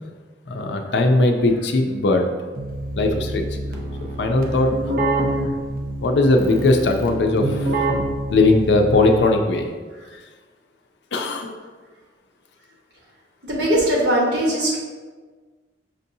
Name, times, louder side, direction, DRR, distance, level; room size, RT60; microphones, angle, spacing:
voice 1, 0.5-2.3 3.0-3.4 4.2-4.7 6.0-7.9 8.3-9.7 11.1-11.6, left 2 dB, 70° left, 4 dB, 0.5 m, -19 dB
Keyboard (musical), 2.5-9.4, right 1 dB, 50° right, 0.5 m, -27 dB
voice 2, 13.4-14.8, right 1 dB, 65° right, -4 dB, 1.2 m, -20 dB
5.9 x 2.7 x 2.7 m, 1.4 s
head